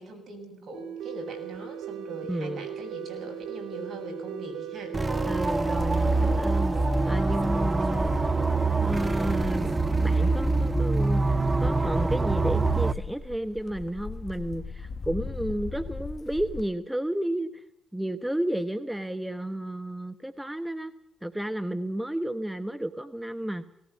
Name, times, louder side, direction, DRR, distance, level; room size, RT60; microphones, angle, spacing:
voice 1, 0.0-5.0, right 1 dB, 55° right, 5 dB, 7.0 m, -41 dB
sound 1, 0.7-11.1, right 7 dB, 70° right, 6.1 m, -40 dB
voice 2, 2.3-2.7 5.3-6.8 7.0-8.1 8.8-17.6 17.9-20.9 21.2-23.7, right 1 dB, 5° right, 10 dB, 1.1 m, -32 dB
sound 2, 4.9-12.9, right 3 dB, 20° right, 0.8 m, -25 dB
sound 3, 5.8-8.6 8.9-16.7, left 4 dB, 50° left, 2.0 m, -38 dB
19.0 x 18.0 x 8.3 m, 0.77 s
cardioid pair, 90°, 0 cm